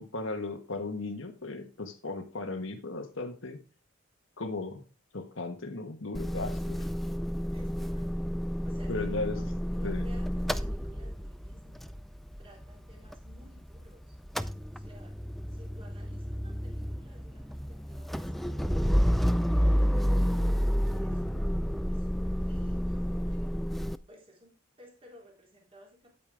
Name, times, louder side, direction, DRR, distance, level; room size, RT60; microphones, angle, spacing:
voice 1, 0.0-3.6 4.4-4.8 5.1-6.9 8.9-9.4 9.8-10.0, left 3 dB, 70° left, 5 dB, 1.5 m, -36 dB
Motor vehicle (road) / Engine starting / Idling, 6.1-13.9 14.1-24.0, equal, ahead, 0.4 m, -30 dB
voice 2, 7.5-8.1 8.6-9.1 9.4-12.0 12.4-14.2 14.4-15.2 15.5-20.0 20.7-21.6 21.8-23.7 24.1-26.1, left 1 dB, 30° right, 0 dB, 3.4 m, -56 dB
9.5 x 8.7 x 3.5 m, 0.30 s
head